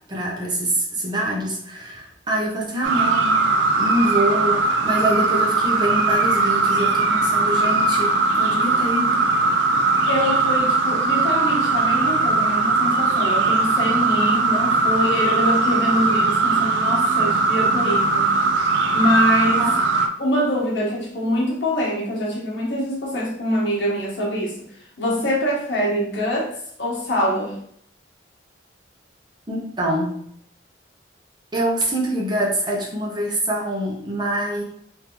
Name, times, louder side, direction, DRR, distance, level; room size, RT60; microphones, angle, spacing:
voice 1, 0.1-3.5 3.7-9.2 19.6-19.7 29.5-30.1 31.5-34.6, right 1 dB, 25° right, -2 dB, 0.7 m, -25 dB
sound 1, 2.8-20.1, right 3 dB, 75° right, 0.4 m, -20 dB
voice 2, 10.1-18.3 18.9-19.7 20.2-24.6 25.0-26.5 26.8-27.6, equal, 70° left, -3 dB, 1.2 m, -24 dB
3.6 x 2.6 x 3.0 m, 0.66 s
head